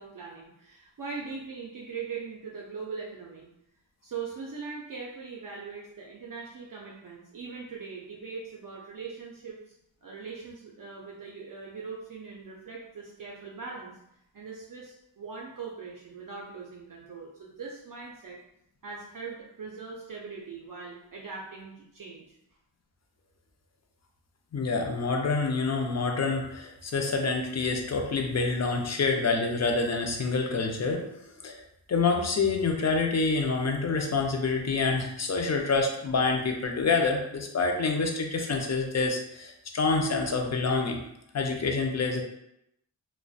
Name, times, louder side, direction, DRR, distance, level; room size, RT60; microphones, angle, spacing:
voice 1, 0.0-3.5 4.0-9.7 10.0-14.0 14.3-18.4 18.8-22.4, right 5 dB, 45° right, -3 dB, 0.5 m, -41 dB
voice 2, 24.5-31.0 31.4-31.6 31.9-41.0 41.3-42.2, left 4 dB, 35° left, 2 dB, 0.5 m, -27 dB
2.4 x 2.1 x 2.4 m, 0.79 s
cardioid pair, 50°, 46 cm